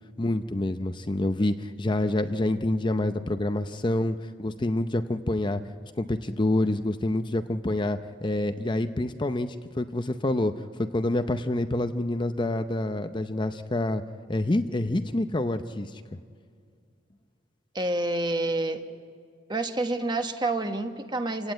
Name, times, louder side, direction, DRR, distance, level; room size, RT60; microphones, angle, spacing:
voice 1, 0.2-5.6 6.0-10.5 10.8-14.0 14.3-15.9, left 1 dB, 25° left, 8 dB, 0.6 m, -27 dB
voice 2, 17.7-18.8 19.5-21.5, right 2 dB, 25° right, 7 dB, 1.2 m, -28 dB
27.5 x 17.0 x 8.9 m, 2.2 s
head